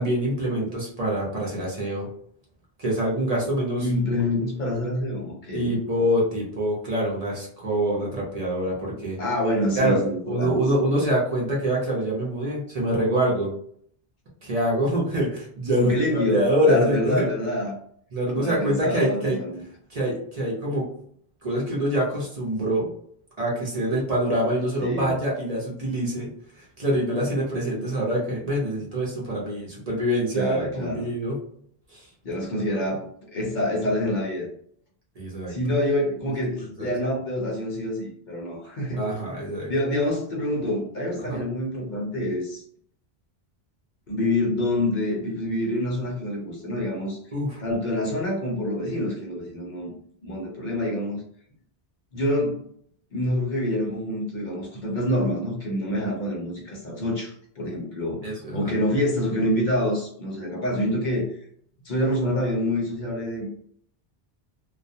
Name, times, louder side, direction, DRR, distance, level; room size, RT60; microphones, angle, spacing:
voice 1, 0.0-2.1 2.8-3.9 5.5-9.2 9.8-10.0 10.3-13.5 14.4-15.9 16.3-17.3 18.1-19.4 19.9-20.9 21.4-22.9 23.4-26.3 26.6-31.4 31.9-32.1 35.2-35.5 36.6-36.9 38.9-39.7 41.2-41.4 47.3-47.6 58.2-58.7, right 1 dB, 45° right, -4 dB, 0.7 m, -25 dB
voice 2, 3.8-5.8 8.9-10.5 15.7-17.8 18.3-19.6 24.8-25.1 30.3-31.1 32.2-34.5 35.5-39.0 39.7-42.6 44.1-47.2 47.6-49.9 50.2-51.2 52.1-52.7 53.1-61.4 61.8-63.5, left 1 dB, 55° left, -2 dB, 0.8 m, -26 dB
2.3 x 2.1 x 2.6 m, 0.64 s
omnidirectional pair, 1.0 m